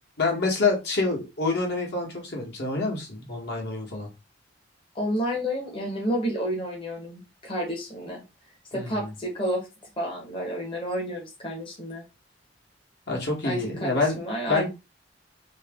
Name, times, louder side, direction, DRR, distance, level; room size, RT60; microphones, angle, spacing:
voice 1, 0.2-4.1 8.7-9.1 13.1-14.2 14.5-14.7, left 3 dB, 60° left, 0 dB, 1.4 m, -27 dB
voice 2, 4.9-8.2 8.7-9.7 10.0-12.0 13.4-14.7, equal, 30° left, -1 dB, 1.0 m, -30 dB
3.1 x 2.9 x 3.5 m, 0.26 s
head